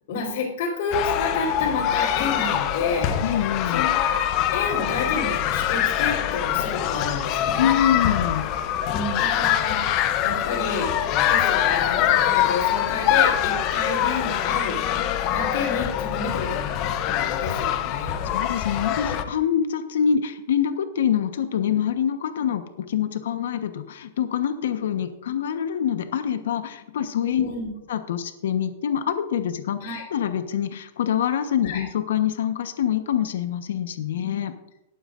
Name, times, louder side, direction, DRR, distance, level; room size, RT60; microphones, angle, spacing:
voice 1, 0.1-3.2 3.7-4.3 4.5-7.7 8.9-14.8 15.3-18.3 27.4-27.7 29.8-30.0 31.6-31.8, left 4 dB, 50° left, -7 dB, 3.5 m, -30 dB
sound 1, 0.9-19.2, left 10 dB, 30° left, 0.7 m, -24 dB
voice 2, 3.2-3.8 7.6-8.5 18.2-27.5 27.9-29.8 30.1-34.5, left 9 dB, 75° left, 9 dB, 1.1 m, -25 dB
18.5 x 9.1 x 2.6 m, 0.89 s
supercardioid pair, 165°, 0 cm